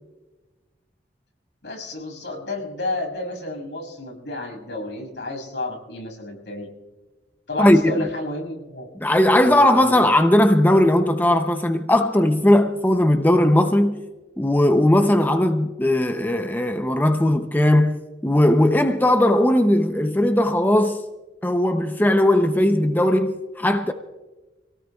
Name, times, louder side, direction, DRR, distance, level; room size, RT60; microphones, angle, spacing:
voice 1, 1.6-6.7 7.5-8.9 9.4-10.0, left 2 dB, 80° left, 6.6 m, -31 dB
voice 2, 7.6-8.0 9.0-14.0 14.4-21.0 21.4-23.9, left 1 dB, 10° left, 0.6 m, -18 dB
26.5 x 18.0 x 2.4 m
head